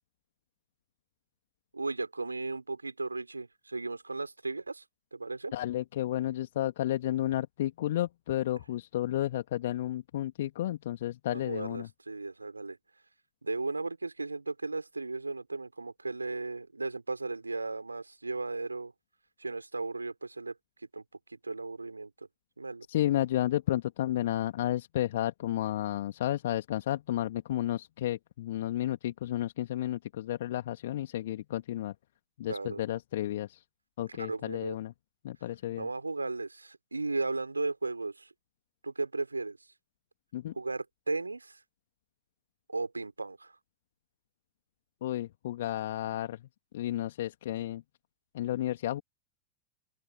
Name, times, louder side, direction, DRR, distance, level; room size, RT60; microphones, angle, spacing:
voice 1, 1.7-4.8 5.1-5.5 11.3-12.8 13.4-18.9 19.4-20.6 20.9-21.0 21.3-22.3 22.6-22.9 32.5-32.8 34.2-34.8 35.8-38.3 38.8-39.6 40.6-41.6 42.7-43.5, right 3 dB, 80° right, 3.7 m, -35 dB
voice 2, 5.5-11.9 22.9-32.0 32.4-33.6 34.0-34.9 35.2-35.9 40.3-40.5 45.0-46.5 46.7-47.8 48.3-49.0, left 13 dB, 55° left, 2.1 m, -32 dB
open air
figure-of-eight pair, 90°, 0 cm